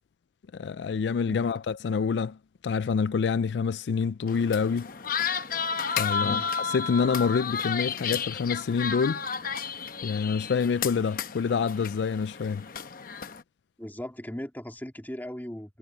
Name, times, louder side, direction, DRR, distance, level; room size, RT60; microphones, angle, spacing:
voice 1, 0.5-2.4 2.6-4.9 5.9-6.4 6.7-9.2 10.0-12.7, left 5 dB, 70° left, 0.4 m, -27 dB
sound 1, 4.3-13.4, left 6 dB, 50° left, 0.9 m, -32 dB
voice 2, 6.2-6.5 13.8-15.8, equal, 10° left, 2.1 m, -38 dB
head